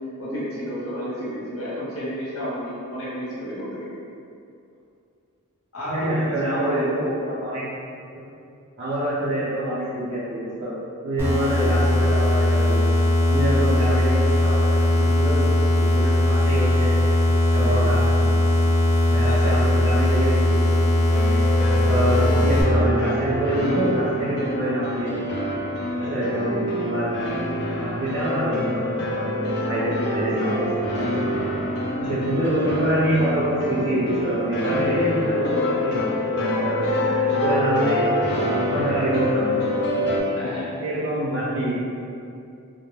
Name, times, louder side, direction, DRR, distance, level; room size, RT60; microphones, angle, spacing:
voice 1, 0.2-3.9 5.7-7.1 19.2-19.7 26.0-26.2 32.0-32.1 40.4-40.8, equal, 70° left, -8 dB, 0.9 m, -31 dB
voice 2, 5.9-7.6 8.8-10.7 11.0-12.9 13.3-14.7 15.0-15.5 15.8-16.9 17.5-18.3 19.0-20.9 21.9-25.4 25.9-27.1 27.7-31.5 32.0-38.0 38.6-39.6 40.8-41.8, right 1 dB, 60° right, -12 dB, 0.7 m, -26 dB
sound 1, 11.2-22.6, left 1 dB, 10° right, 0.4 m, -19 dB
sound 2, 21.1-40.2, left 1 dB, 50° left, 0.4 m, -26 dB
2.3 x 2.1 x 3.1 m, 2.5 s
head